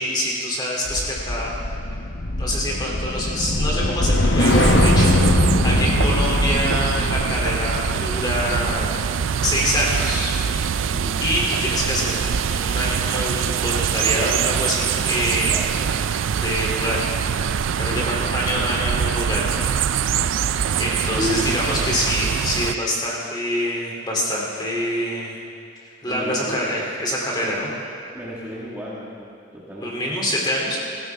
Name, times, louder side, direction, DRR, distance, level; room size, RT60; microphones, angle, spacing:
voice 1, 0.0-1.5 2.4-5.1 5.6-9.1 9.4-10.3 11.2-15.6 16.4-17.1 17.8-19.5 20.8-25.4 26.0-27.7 29.8-30.8, equal, 20° left, -3 dB, 2.9 m, -25 dB
sound 1, 0.9-11.3 11.6-11.9, left 1 dB, 65° left, 1.1 m, -22 dB
sound 2, 4.4-22.7, right 7 dB, 80° right, 0.4 m, -24 dB
voice 2, 15.5-15.9 17.9-18.6 21.2-21.9 26.1-26.6 27.4-27.7 28.1-30.2, equal, 10° right, -7 dB, 1.7 m, -33 dB
19.0 x 15.5 x 3.5 m, 2.5 s
head